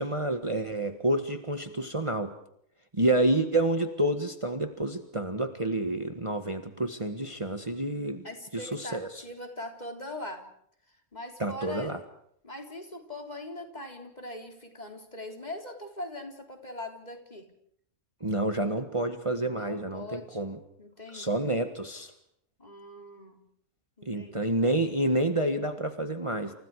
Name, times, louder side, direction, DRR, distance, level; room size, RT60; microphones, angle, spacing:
voice 1, 0.0-2.3 2.9-8.2 8.9-9.1 11.4-12.0 18.2-20.6 21.1-22.1 24.1-26.5, right 1 dB, 25° right, 6 dB, 1.7 m, -28 dB
voice 2, 8.2-10.5 10.9-12.0 12.4-17.5 19.4-20.5 20.8-21.5 22.6-23.4 24.0-24.4, left 1 dB, 35° left, 3 dB, 3.9 m, -41 dB
29.5 x 29.0 x 4.9 m, 0.68 s
omnidirectional pair, 1.3 m